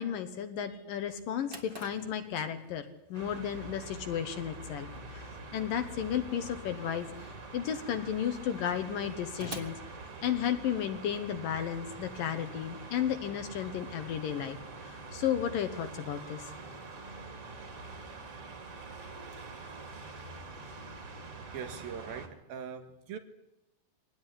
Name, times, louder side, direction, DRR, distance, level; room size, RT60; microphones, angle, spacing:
voice 1, 0.0-9.8 10.2-16.5, left 9 dB, 65° left, 2.6 m, -34 dB
Drawer open or close, 1.4-10.8, right 1 dB, 20° right, 1.5 m, -51 dB
sound 1, 3.1-22.3, right 3 dB, 35° right, 3.3 m, -45 dB
voice 2, 21.5-23.2, right 7 dB, 70° right, 3.2 m, -41 dB
23.5 x 18.5 x 10.0 m
omnidirectional pair, 4.7 m